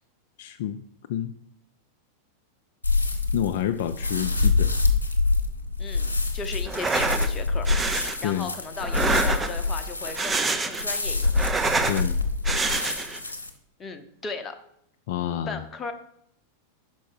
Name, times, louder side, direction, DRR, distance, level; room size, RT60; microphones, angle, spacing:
voice 1, 0.4-0.8 1.1-1.3 3.3-4.7 8.2-8.5 11.8-12.2 15.1-15.6, left 11 dB, 55° left, 8 dB, 0.3 m, -28 dB
sound 1, 2.8-13.5, left 3 dB, 80° left, 0.8 m, -26 dB
voice 2, 5.8-11.5 13.8-14.6 15.5-15.9, left 4 dB, 20° left, 7 dB, 0.8 m, -37 dB
sound 2, 6.7-7.3 7.7-8.2 8.8-9.7 10.1-10.9 11.2-12.0 12.4-13.2, right 4 dB, 15° right, 0.5 m, -26 dB
5.4 x 5.3 x 5.3 m, 0.72 s
figure-of-eight pair, 90°, 0 cm